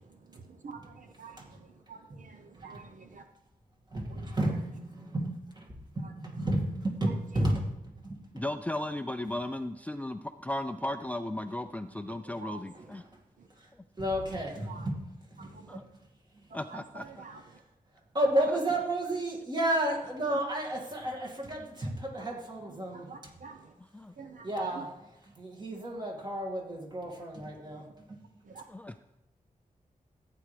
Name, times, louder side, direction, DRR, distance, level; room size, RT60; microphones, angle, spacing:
voice 1, 0.3-3.2 4.1-4.3 12.1-12.6 14.7-14.9 15.4-15.8 16.5-17.4 22.9-23.7 24.2-24.8 27.7-27.9 28.5-28.6, right 5 dB, 65° right, 6 dB, 0.8 m, -48 dB
voice 2, 3.9-8.2 12.7-12.8 13.6-13.7 14.0-15.8 18.1-23.3 24.4-24.9 25.2-27.9, right 1 dB, 30° right, 0 dB, 2.2 m, -32 dB
voice 3, 8.3-13.0 15.7-15.8 16.5-17.2 23.9-24.1 28.7-29.0, left 1 dB, 10° left, 9 dB, 0.4 m, -36 dB
14.5 x 9.3 x 3.4 m, 0.94 s
wide cardioid pair, 125°, 14 cm